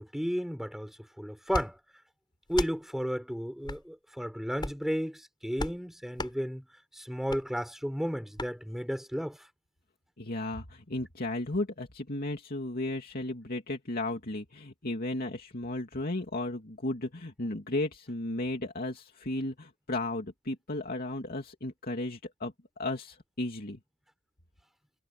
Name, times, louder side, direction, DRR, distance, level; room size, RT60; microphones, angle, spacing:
voice 1, 0.0-1.8 2.5-6.6 7.0-9.4, equal, ahead, 3.9 m, -33 dB
sound 1, 1.5-1.7 2.5-2.8 3.6-3.8 4.5-4.9 5.6-5.8 6.2-6.3 7.3-7.4 8.4-8.5, left 1 dB, 20° left, 4.9 m, -35 dB
voice 2, 10.2-23.8, left 2 dB, 45° left, 2.7 m, -34 dB
head